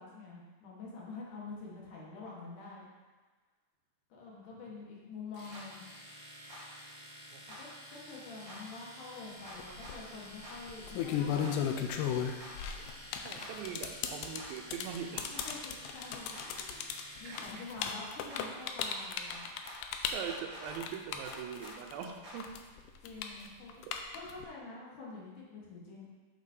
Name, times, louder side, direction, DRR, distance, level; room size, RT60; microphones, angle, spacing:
voice 1, 0.0-2.9 4.1-5.9 7.6-11.5 15.3-16.9 17.2-19.5 23.0-23.8 24.1-26.0, left 3 dB, 65° left, -5 dB, 2.7 m, -47 dB
Domestic sounds home sounds, 5.3-17.7, equal, 30° left, 1.0 m, -51 dB
sound 1, 5.5-5.6 6.5-6.6 7.5-7.6 8.5-8.6 9.4-10.0 10.4-10.6 11.4-11.5 12.4-12.5 13.4-13.5 14.4-14.5 15.3-15.5 16.3-16.5 17.3-17.5 18.3-18.4 19.3-19.8 20.3-20.8 21.2-21.8 22.2-22.4, equal, 40° right, 1.7 m, -48 dB
sound 2, 9.6-9.9 10.7-22.0 22.4-24.4, left 8 dB, 90° left, 1.8 m, -35 dB
voice 2, 13.2-15.3 16.5-16.6 17.2-17.8 20.1-22.5 23.8-23.9, right 7 dB, 85° right, 2 dB, 2.5 m, -42 dB
8.2 x 6.9 x 2.8 m, 1.3 s
omnidirectional pair, 4.2 m